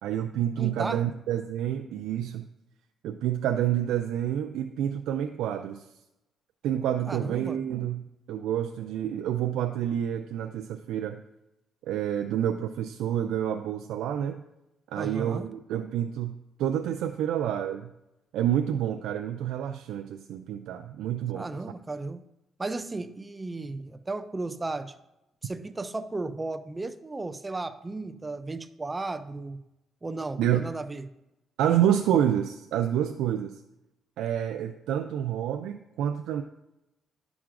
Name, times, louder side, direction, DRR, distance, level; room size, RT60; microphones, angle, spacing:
voice 1, 0.0-2.5 3.0-5.9 6.6-11.2 11.8-14.4 14.9-17.9 18.3-21.5 30.4-30.6 31.6-33.6 34.2-36.4, right 10 dB, 85° right, 6 dB, 0.3 m, -28 dB
voice 2, 0.6-1.0 7.1-7.6 15.0-15.5 21.3-22.2 22.6-24.9 25.4-29.6 30.0-31.1, right 3 dB, 20° right, 11 dB, 0.4 m, -34 dB
11.0 x 5.9 x 2.5 m, 0.90 s
cardioid pair, 90°, 0 cm